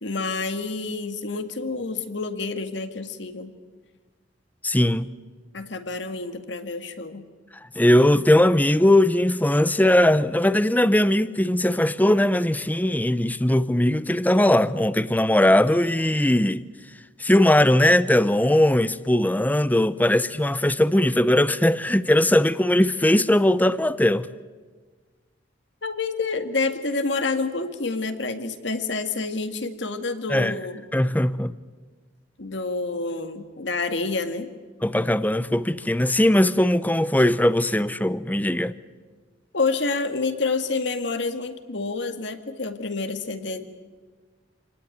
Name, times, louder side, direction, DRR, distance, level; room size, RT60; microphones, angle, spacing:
voice 1, 0.0-3.5 5.5-7.2 25.8-30.8 32.4-34.5 39.5-43.6, left 3 dB, 65° left, 2.0 m, -28 dB
voice 2, 4.6-5.1 7.8-16.6 17.2-24.3 30.3-30.6 30.9-31.6 34.8-38.7, left 1 dB, 10° left, 0.7 m, -19 dB
27.5 x 19.0 x 9.4 m
head